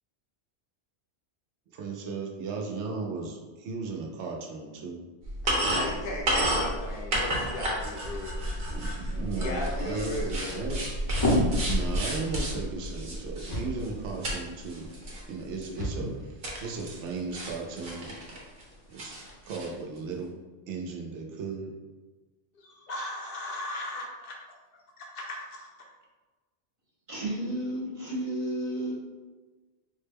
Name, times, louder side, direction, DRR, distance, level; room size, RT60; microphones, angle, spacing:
voice 1, 1.7-5.0 8.7-10.8 11.6-14.9 15.3-18.1 18.9-19.1 19.4-20.4 20.7-21.7, right 4 dB, 80° right, 1 dB, 0.9 m, -36 dB
sound 1, 5.2-14.4 14.6-15.2 15.6-15.7 16.4-17.1 17.3-18.6 19.0-19.7, right 1 dB, 55° right, 0.9 m, -31 dB
voice 2, 5.4-10.7 22.9-24.3 25.2-25.3 25.5-25.6, left 1 dB, 60° left, -1 dB, 0.7 m, -37 dB
sound 2, 6.0-19.4, left 1 dB, 25° left, 0.5 m, -36 dB
voice 3, 27.1-28.9, right 1 dB, 40° right, -4 dB, 0.5 m, -32 dB
3.6 x 2.1 x 3.3 m, 1.3 s
omnidirectional pair, 1.2 m